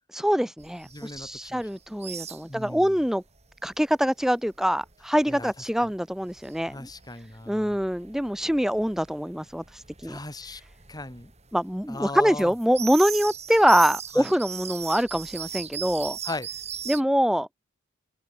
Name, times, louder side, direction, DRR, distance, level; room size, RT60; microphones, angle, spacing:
voice 1, 0.1-3.2 3.6-6.9 7.5-10.2 11.5-16.2 16.9-17.6, equal, ahead, 1.1 m, -24 dB
sound 1, 0.6-3.1 3.4-17.0, right 9 dB, 30° right, 5.5 m, -39 dB
voice 2, 0.9-1.6 2.5-3.0 5.3-5.5 5.8-5.9 6.7-7.8 10.0-10.6 10.9-11.3 11.9-12.5 14.1-14.3 16.2-16.5, left 2 dB, 20° left, 4.1 m, -37 dB
open air
head